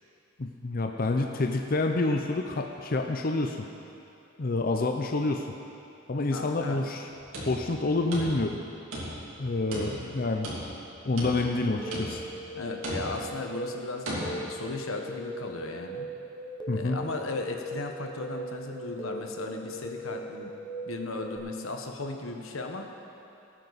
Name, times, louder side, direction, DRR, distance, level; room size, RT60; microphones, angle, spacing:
voice 1, 0.4-3.7 4.4-5.5 6.1-7.1 7.5-8.6 9.4-10.5 11.0-12.2 16.7-17.0, left 2 dB, 45° left, 3 dB, 0.6 m, -28 dB
voice 2, 6.3-6.8 12.5-16.1 16.7-20.5 20.9-22.9, left 3 dB, 85° left, 3 dB, 1.2 m, -36 dB
sound 1, 7.2-8.6 8.9-9.4 9.7-10.8 11.2-11.6 11.9-12.4 12.8-13.4 14.1-14.3, equal, 80° right, 3.0 m, -36 dB
sound 2, 11.8-21.4, right 1 dB, 20° left, 1.1 m, -39 dB
19.0 x 9.1 x 4.1 m, 2.7 s
head